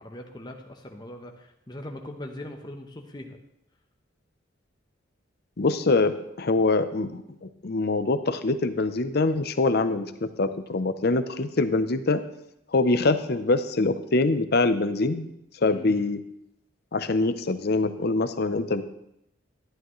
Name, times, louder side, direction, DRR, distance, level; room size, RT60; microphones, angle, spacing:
voice 1, 0.0-3.4 15.7-16.0, left 1 dB, 20° left, 3 dB, 0.9 m, -40 dB
voice 2, 5.6-12.2 12.7-15.3 15.6-16.2 16.9-18.8, left 3 dB, 50° left, 11 dB, 0.6 m, -24 dB
11.5 x 11.0 x 3.1 m, 0.78 s
head